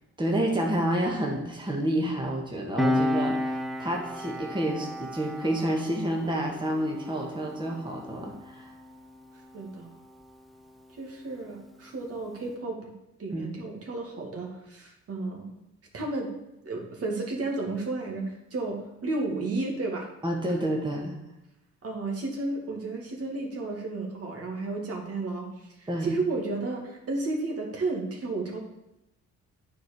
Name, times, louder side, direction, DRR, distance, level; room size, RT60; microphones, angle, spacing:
voice 1, 0.2-8.7 13.3-13.5 20.2-21.2 25.9-26.2, right 1 dB, 15° right, -1 dB, 1.8 m, -29 dB
Piano, 2.8-9.8 10.1-10.3, left 1 dB, ahead, 0.9 m, -32 dB
voice 2, 9.5-9.9 11.0-12.9 13.2-15.5 15.9-16.3 16.6-20.1 21.8-28.6, right 3 dB, 50° right, 0 dB, 2.2 m, -32 dB
9.2 x 4.8 x 6.8 m, 0.91 s
cardioid pair, 90°, 30 cm